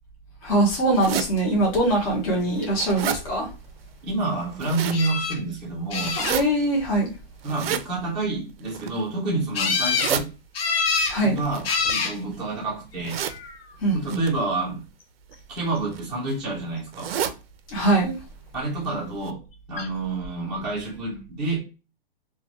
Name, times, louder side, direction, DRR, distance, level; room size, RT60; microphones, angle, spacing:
voice 1, 0.4-3.5 6.2-7.1 11.1-11.4 13.8-14.2 17.7-18.2, right 1 dB, 40° left, 0.9 m, -22 dB
sound 1, 1.0-1.3 1.9-2.0 2.4-3.2 4.3-5.0 6.0-6.4 7.4-7.9 8.6-9.0 9.7-10.2 11.4-12.4 13.0-13.4 14.1-14.3 15.3-15.6 15.9-16.0 16.3-16.4 16.9-17.4 17.8-17.9 18.2-18.3 18.8-18.9 19.2-19.3, right 9 dB, 80° right, 0.5 m, -30 dB
voice 2, 4.0-6.2 7.4-10.3 11.2-13.2 13.9-14.8 15.5-17.1 18.5-19.4 19.7-21.6, right 2 dB, ahead, 0.5 m, -28 dB
sound 2, 4.9-5.4 5.9-6.6 9.5-10.2 10.6-11.2 11.6-12.2 13.1-13.6 19.8-19.9 20.2-20.3, left 5 dB, 80° left, 0.7 m, -25 dB
2.6 x 2.2 x 2.9 m
hypercardioid pair, 165°, 29 cm